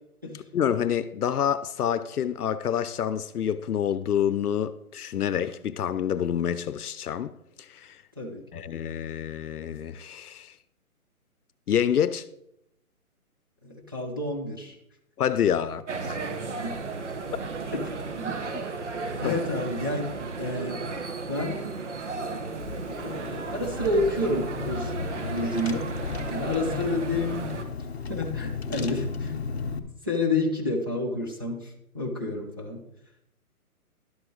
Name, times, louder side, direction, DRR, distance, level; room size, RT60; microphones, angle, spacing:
voice 1, 0.5-8.0 8.5-10.5 11.7-12.3 15.2-16.2 19.2-19.4, left 9 dB, 80° left, 0.7 m, -27 dB
voice 2, 13.6-14.8 16.6-16.8 17.7-18.3 19.2-20.1 20.4-20.9 21.3-21.8 23.0-25.9 26.3-27.5 28.1-29.3 30.0-32.8, left 2 dB, 15° right, 0.7 m, -29 dB
sound 1, 15.9-27.6, right 4 dB, 50° right, 1.2 m, -34 dB
Car / Engine, 22.6-29.8, left 5 dB, 45° left, 0.9 m, -35 dB
11.5 x 8.0 x 3.9 m
hypercardioid pair, 175°, 44 cm